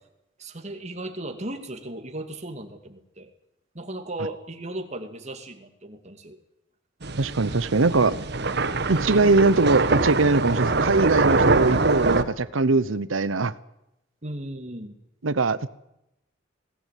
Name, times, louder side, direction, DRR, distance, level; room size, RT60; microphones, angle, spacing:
voice 1, 0.4-3.3 3.7-6.4 8.0-8.3 14.2-15.0, right 1 dB, 35° right, 6 dB, 2.4 m, -36 dB
sound 1, 7.0-12.2, right 3 dB, 55° right, 1.3 m, -23 dB
voice 2, 7.2-8.1 8.9-13.5 15.2-15.7, right 3 dB, 90° right, 16 dB, 0.9 m, -21 dB
20.5 x 17.5 x 9.3 m, 0.87 s
head